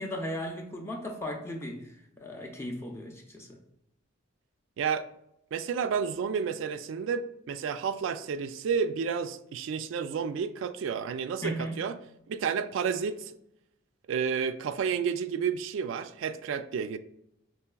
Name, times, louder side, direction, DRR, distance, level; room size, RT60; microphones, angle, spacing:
voice 1, 0.0-3.6 11.4-11.8, equal, 10° left, 0.4 m, -36 dB
voice 2, 4.8-5.1 5.5-12.0 12.3-13.3 14.1-17.0, right 6 dB, 70° right, 0.3 m, -31 dB
5.6 x 3.1 x 2.2 m
head